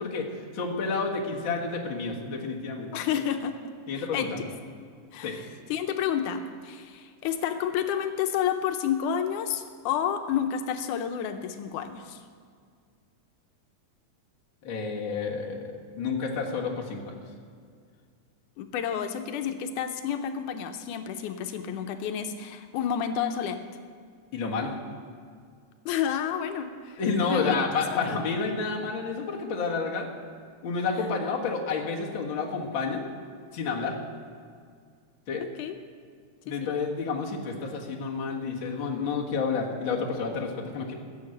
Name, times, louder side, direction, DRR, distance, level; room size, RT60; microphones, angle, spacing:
voice 1, 0.0-2.9 3.9-4.4 5.2-5.4 14.6-17.2 24.3-24.7 27.0-30.1 30.6-33.1 33.5-34.0 35.3-35.5 36.5-40.9, left 4 dB, 45° left, -2 dB, 2.1 m, -30 dB
voice 2, 2.9-3.6 4.0-4.3 5.1-12.2 18.6-23.6 25.9-27.6 28.0-28.2 35.6-35.8 36.5-36.7, left 8 dB, 85° left, 7 dB, 2.2 m, -30 dB
15.5 x 7.2 x 7.8 m, 2.1 s
omnidirectional pair, 3.5 m